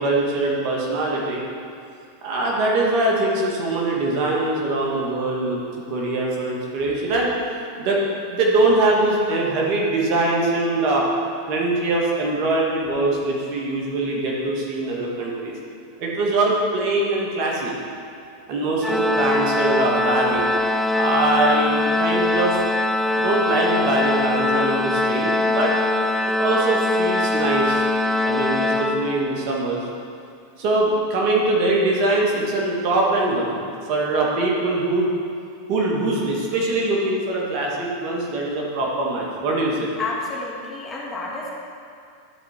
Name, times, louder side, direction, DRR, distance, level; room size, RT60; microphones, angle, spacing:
voice 1, 0.0-1.4 2.2-5.6 5.9-7.3 7.8-8.0 8.3-11.0 11.5-15.5 16.0-17.7 18.5-20.5 20.9-22.6 23.2-25.7 26.3-27.9 28.2-29.8 30.6-33.5 33.9-35.1 35.7-39.9, right 2 dB, 55° right, -3 dB, 1.7 m, -22 dB
Organ, 18.8-29.6, left 2 dB, ahead, 0.4 m, -22 dB
voice 2, 40.0-41.5, left 3 dB, 15° left, -5 dB, 2.3 m, -30 dB
12.0 x 4.7 x 4.4 m, 2.3 s
hypercardioid pair, 105°, 0 cm